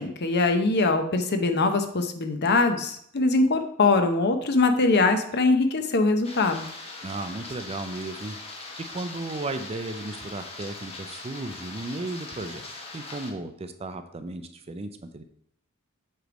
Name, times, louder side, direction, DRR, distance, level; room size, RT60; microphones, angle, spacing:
voice 1, 0.0-6.7, left 3 dB, 50° left, 7 dB, 0.7 m, -22 dB
sound 1, 6.2-13.3, left 2 dB, 30° left, 1.1 m, -41 dB
voice 2, 7.0-8.4 8.9-12.7 12.9-15.2, right 2 dB, 30° right, 9 dB, 0.5 m, -35 dB
7.9 x 3.3 x 5.1 m, 0.70 s
head